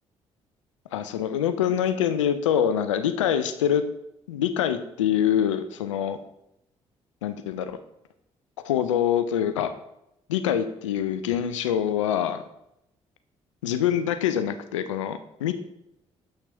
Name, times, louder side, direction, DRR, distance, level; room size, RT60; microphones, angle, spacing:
voice 1, 0.9-3.8 4.3-6.2 7.2-7.8 8.6-9.7 10.3-12.4 13.6-15.5, left 9 dB, 85° left, 10 dB, 0.4 m, -25 dB
7.7 x 5.8 x 3.3 m, 0.81 s
hypercardioid pair, 45°, 15 cm